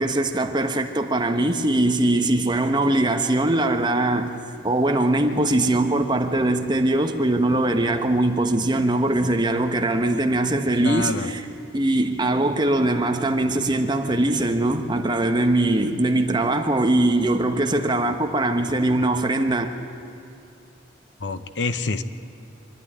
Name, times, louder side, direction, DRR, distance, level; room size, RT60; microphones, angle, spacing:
voice 1, 0.0-4.3 4.6-11.4 11.7-19.7, right 2 dB, 25° right, 1.2 m, -21 dB
voice 2, 10.8-11.3 21.2-22.0, left 3 dB, 70° left, 0.9 m, -26 dB
25.0 x 11.5 x 10.0 m
head